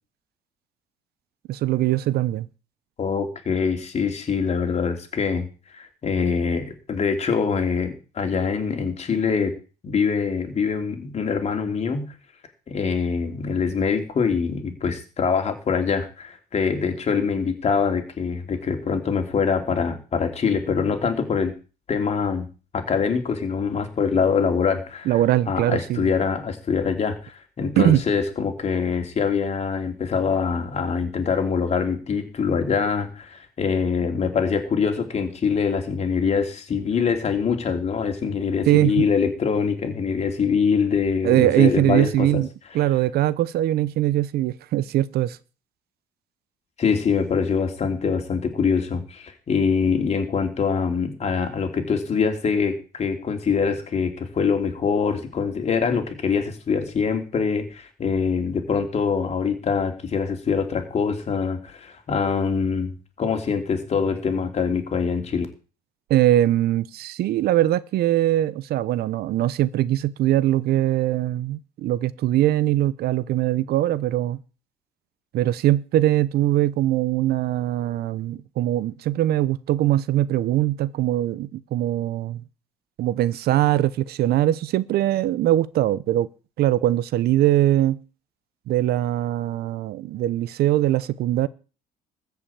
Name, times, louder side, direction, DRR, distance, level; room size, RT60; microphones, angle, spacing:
voice 1, 1.5-2.5 25.1-26.1 27.8-28.0 38.7-39.1 41.2-42.5 42.7-45.4 66.1-74.4 75.3-82.4 83.0-86.3 86.6-88.0 88.7-91.5, right 13 dB, 70° right, 0.7 m, -21 dB
voice 2, 3.0-9.5 9.8-12.1 12.7-21.5 21.9-22.5 22.7-25.2 25.5-42.4 46.8-62.9 63.2-65.5, left 5 dB, 40° left, 3.1 m, -24 dB
14.0 x 5.8 x 8.7 m
cardioid pair, 110°, 17 cm